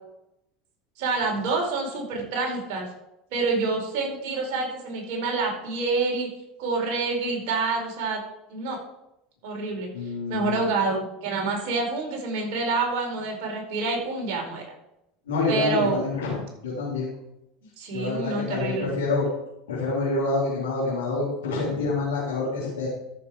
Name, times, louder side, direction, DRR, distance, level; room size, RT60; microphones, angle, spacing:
voice 1, 1.0-2.9 3.3-6.3 6.6-8.2 8.5-8.8 9.4-9.9 10.3-14.7 15.5-16.0 17.8-18.9, right 3 dB, 65° right, 0 dB, 4.6 m, -27 dB
voice 2, 9.9-10.6 15.3-16.4 16.6-17.1 17.9-19.3 19.7-22.9, left 3 dB, 85° left, -7 dB, 3.8 m, -27 dB
14.0 x 6.9 x 5.0 m, 0.86 s
hypercardioid pair, 85°, 0 cm